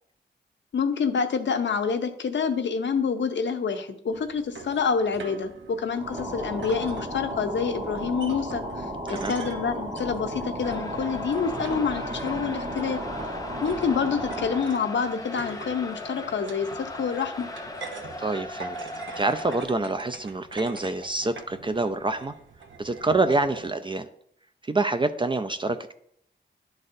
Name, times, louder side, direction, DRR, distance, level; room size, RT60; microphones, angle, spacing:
voice 1, 0.7-13.0 13.6-17.5, left 5 dB, 75° left, 8 dB, 0.7 m, -27 dB
sound 1, 4.1-23.7, right 4 dB, 85° right, 0.7 m, -44 dB
sound 2, 5.9-14.8, equal, 40° right, 1.2 m, -34 dB
sound 3, 10.6-19.6, left 1 dB, 20° left, 0.7 m, -38 dB
voice 2, 18.2-18.9 19.2-22.3 22.8-24.1 24.6-25.9, right 2 dB, 25° right, 8 dB, 0.4 m, -26 dB
11.0 x 4.1 x 2.6 m, 0.69 s
wide cardioid pair, 95°, 19 cm